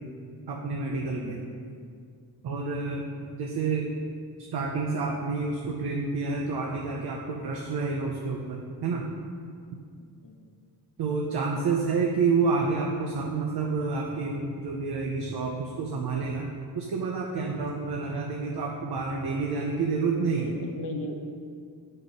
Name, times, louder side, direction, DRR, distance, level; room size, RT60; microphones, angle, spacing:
voice 1, 0.5-1.4 2.4-3.1 3.4-3.9 4.5-9.1 11.0-16.5 16.7-20.6, right 4 dB, 80° right, 0 dB, 0.8 m, -29 dB
voice 2, 20.3-21.3, left 2 dB, 55° left, 4 dB, 0.8 m, -37 dB
8.6 x 4.4 x 5.1 m, 2.3 s
wide cardioid pair, 150°, 38 cm